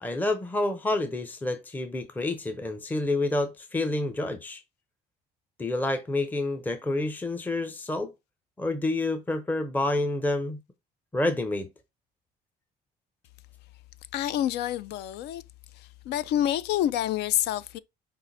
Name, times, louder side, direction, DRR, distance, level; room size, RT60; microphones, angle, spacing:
voice 1, 0.0-4.6 5.6-8.1 8.6-10.6 11.1-11.7, left 2 dB, 10° left, 0.6 m, -28 dB
voice 2, 14.1-15.4 15.7-17.8, left 12 dB, 80° left, 0.4 m, -28 dB
5.5 x 2.5 x 3.8 m
cardioid pair, 110°, 17 cm